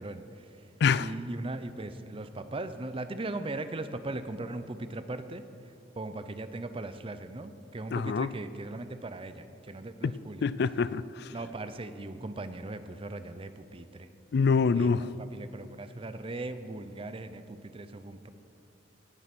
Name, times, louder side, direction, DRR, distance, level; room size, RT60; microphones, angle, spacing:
voice 1, 0.0-0.6 1.0-10.4 11.3-14.1 14.7-18.3, right 2 dB, 30° right, 0.6 m, -39 dB
voice 2, 7.9-8.3 10.0-10.1 10.4-11.3 14.3-15.1, left 5 dB, 60° left, 0.4 m, -25 dB
18.0 x 7.7 x 6.0 m
head